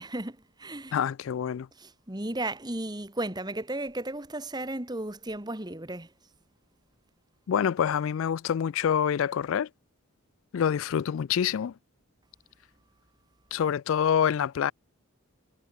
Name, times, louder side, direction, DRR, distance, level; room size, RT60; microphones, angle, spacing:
voice 1, 0.0-1.0 1.8-6.1, right 1 dB, 20° right, 1.8 m, -34 dB
voice 2, 0.9-1.7 7.5-9.7 10.5-11.7 13.5-14.7, left 8 dB, 70° left, 0.3 m, -26 dB
head